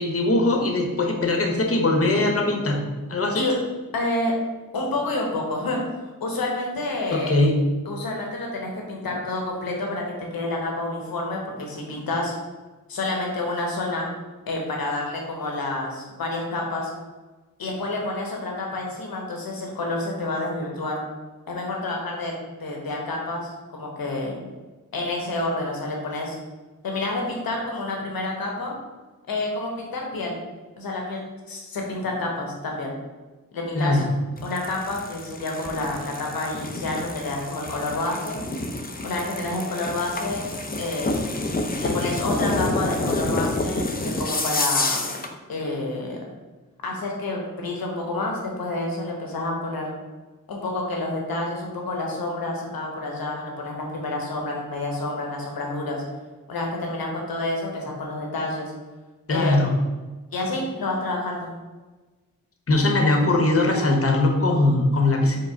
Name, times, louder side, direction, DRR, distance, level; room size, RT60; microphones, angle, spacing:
voice 1, 0.0-2.8 3.1-3.4 7.1-7.5 33.7-34.0 59.3-59.7 62.7-65.4, left 2 dB, 40° left, 2 dB, 0.9 m, -21 dB
voice 2, 3.9-4.3 4.7-7.4 7.8-12.3 12.9-14.1 14.5-16.9 17.6-21.0 21.5-24.4 24.9-26.4 26.8-28.7 29.3-30.4 30.8-32.9 33.5-34.0 34.4-38.4 39.0-40.4 40.8-41.3 41.8-45.1 45.5-46.2 46.8-49.9 50.5-56.0 56.5-58.7 59.3-59.8 60.3-61.5, left 2 dB, 85° left, 0 dB, 1.0 m, -29 dB
sound 1, 34.4-45.3, left 2 dB, 25° left, 0.5 m, -28 dB
4.8 x 2.1 x 4.4 m, 1.2 s
cardioid pair, 50°, 35 cm